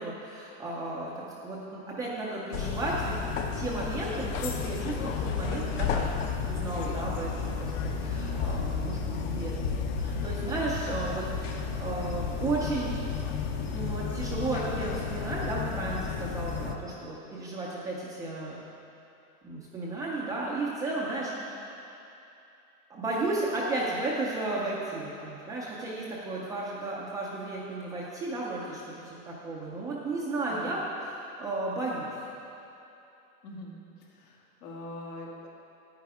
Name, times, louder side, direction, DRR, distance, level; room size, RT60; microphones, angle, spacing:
voice 1, 0.0-3.2 3.5-12.9 13.7-18.6 19.4-21.8 22.9-32.1, right 2 dB, 10° right, -5 dB, 0.3 m, -34 dB
sound 1, 2.5-16.7, left 6 dB, 60° left, 0.9 m, -32 dB
voice 2, 33.4-33.8 34.1-35.5, left 1 dB, 85° left, -3 dB, 2.4 m, -43 dB
10.0 x 9.1 x 4.7 m, 2.8 s
supercardioid pair, 150°, 44 cm